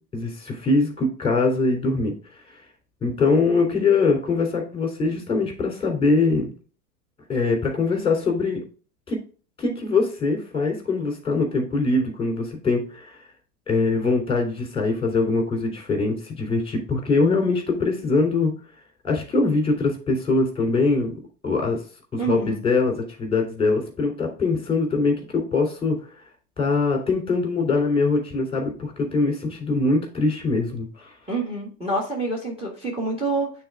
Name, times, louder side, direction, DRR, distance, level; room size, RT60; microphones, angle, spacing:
voice 1, 0.1-2.1 3.0-6.5 7.3-8.6 9.1-9.2 9.6-13.1 13.7-18.5 19.0-21.1 21.4-21.8 22.1-26.0 26.6-31.1, left 3 dB, 10° left, 2 dB, 3.1 m, -22 dB
voice 2, 22.2-22.6 31.3-33.5, right 3 dB, 10° right, 0 dB, 1.7 m, -27 dB
8.9 x 4.1 x 3.5 m, 0.39 s
hypercardioid pair, 105°, 49 cm